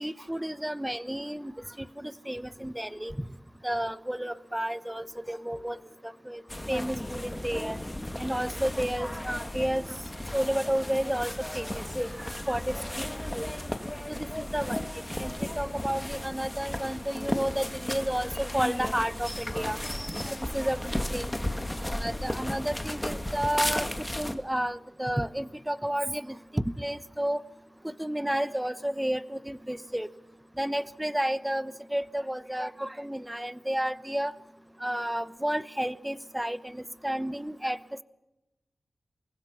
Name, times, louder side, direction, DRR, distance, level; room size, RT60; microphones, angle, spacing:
voice 1, 0.0-1.5 1.8-3.3 3.6-5.8 6.0-6.4 6.7-7.8 8.2-9.8 10.3-11.8 12.2-13.1 13.3-13.5 14.1-14.8 15.2-20.8 21.1-21.3 21.9-23.9 24.2-27.4 27.8-30.1 30.6-34.3 34.8-37.8, right 1 dB, 10° right, 15 dB, 1.0 m, -31 dB
sound 1, 6.5-24.3, left 1 dB, 15° left, 2.4 m, -34 dB
28.5 x 21.5 x 5.7 m, 0.95 s
cardioid pair, 55°, 0 cm